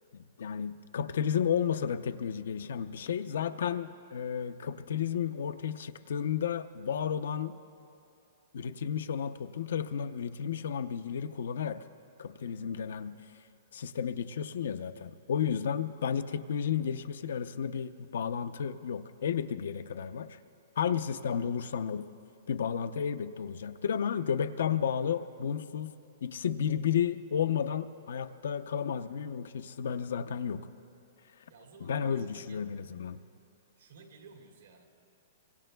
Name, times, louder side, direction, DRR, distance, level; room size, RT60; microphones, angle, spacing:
voice 1, 0.1-7.6 8.5-11.8 12.2-13.2 13.7-20.4 20.8-22.1 22.5-25.9 26.2-30.6 31.9-33.2, left 8 dB, 75° left, 10 dB, 0.5 m, -32 dB
voice 2, 31.5-32.6 33.8-34.9, right 4 dB, 85° right, 1 dB, 2.2 m, -54 dB
24.5 x 22.5 x 2.2 m, 2.6 s
hypercardioid pair, 160°, 0 cm